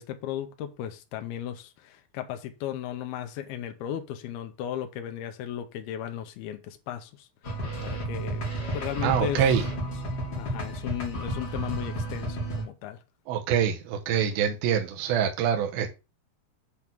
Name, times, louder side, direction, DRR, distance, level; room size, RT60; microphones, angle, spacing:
voice 1, 0.0-7.3 7.8-8.4 8.7-9.4 10.3-13.0, left 10 dB, 85° left, 2.8 m, -35 dB
sound 1, 7.4-12.6, right 1 dB, 35° left, 1.9 m, -32 dB
voice 2, 9.0-9.6 13.3-15.9, right 8 dB, 75° right, 2.8 m, -25 dB
8.4 x 3.6 x 6.0 m
omnidirectional pair, 4.4 m